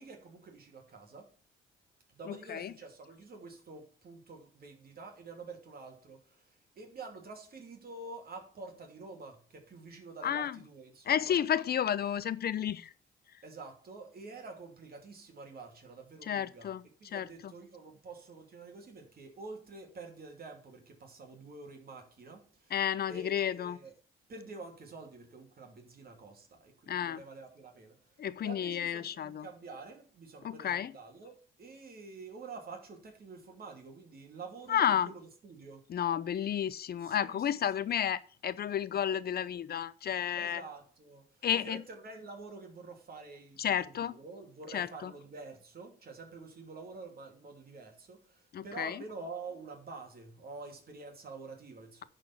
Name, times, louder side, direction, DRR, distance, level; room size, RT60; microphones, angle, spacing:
voice 1, 0.0-1.3 2.1-11.4 13.4-16.7 17.0-22.8 23.1-23.9 24.3-35.9 37.0-37.8 40.4-52.0, right 3 dB, 50° right, 2.7 m, -48 dB
voice 2, 2.3-2.7 10.2-10.6 11.1-12.9 16.2-16.8 17.1-17.5 22.7-23.8 26.9-27.2 28.2-29.5 30.4-30.9 34.7-35.1 35.9-40.6 41.4-41.8 43.6-44.2 44.7-45.1 48.5-49.0, left 9 dB, 50° left, 0.7 m, -32 dB
11.0 x 4.5 x 7.2 m
cardioid pair, 90°, 20 cm